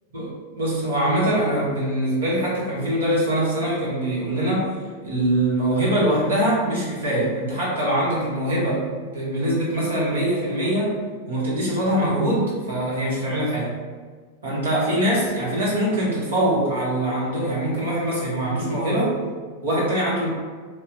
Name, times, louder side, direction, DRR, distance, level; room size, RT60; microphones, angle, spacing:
voice 1, 0.1-4.8 5.0-11.0 11.3-13.7 14.4-19.2 19.6-20.3, right 1 dB, 65° right, -7 dB, 1.4 m, -23 dB
3.0 x 2.4 x 3.9 m, 1.5 s
figure-of-eight pair, 90°, 0 cm